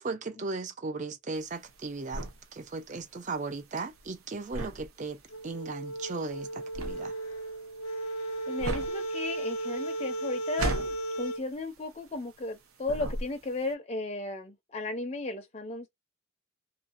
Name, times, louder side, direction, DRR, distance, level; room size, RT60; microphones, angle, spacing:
voice 1, 0.0-2.2 2.5-7.1, right 3 dB, 35° right, 0.4 m, -37 dB
sound 1, 1.4-12.5 12.8-13.7, right 1 dB, 75° right, 0.7 m, -37 dB
sound 2, 5.3-11.4, right 2 dB, 85° left, 0.5 m, -35 dB
voice 2, 8.5-15.9, left 2 dB, 30° left, 0.5 m, -35 dB
2.5 x 2.1 x 2.4 m
head